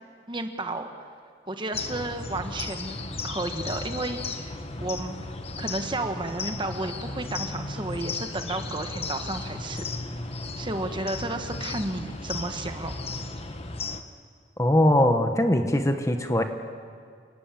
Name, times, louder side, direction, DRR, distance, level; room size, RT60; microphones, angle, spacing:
voice 1, 0.3-0.9 1.5-3.0 3.2-4.5 4.8-5.2 5.6-9.9 10.6-13.0, right 2 dB, 25° right, 6 dB, 1.4 m, -32 dB
sound 1, 1.7-14.0, left 3 dB, 35° left, 1.4 m, -35 dB
voice 2, 14.6-16.4, left 1 dB, 15° left, 6 dB, 1.4 m, -21 dB
29.5 x 18.5 x 7.6 m, 2.3 s
head